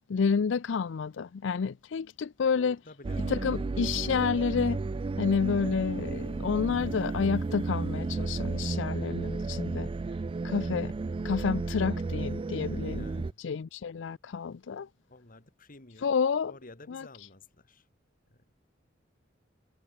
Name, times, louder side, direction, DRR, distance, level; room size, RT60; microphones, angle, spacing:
voice 1, 0.1-2.8 3.3-4.8 5.2-9.9 10.4-10.9 11.2-13.1 13.4-14.9 16.0-16.5 16.9-17.1, left 5 dB, 70° left, 0.4 m, -29 dB
voice 2, 2.5-3.4 13.0-13.4 15.1-16.1 16.4-17.9 18.3-18.4, left 2 dB, 45° left, 2.9 m, -51 dB
sound 1, 3.0-13.3, right 3 dB, 30° right, 0.3 m, -33 dB
head